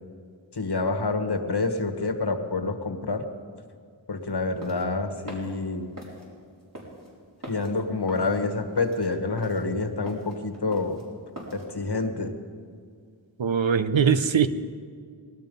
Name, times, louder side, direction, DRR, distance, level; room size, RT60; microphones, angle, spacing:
voice 1, 0.5-3.3 4.1-5.8 7.5-11.0 11.5-12.3, left 3 dB, 60° left, 5 dB, 1.4 m, -27 dB
sound 1, 4.4-11.7, right 1 dB, 45° right, 4.3 m, -43 dB
voice 2, 13.4-14.5, right 7 dB, 90° right, 11 dB, 0.7 m, -21 dB
19.0 x 12.5 x 5.3 m, 2.1 s
wide cardioid pair, 50°, 44 cm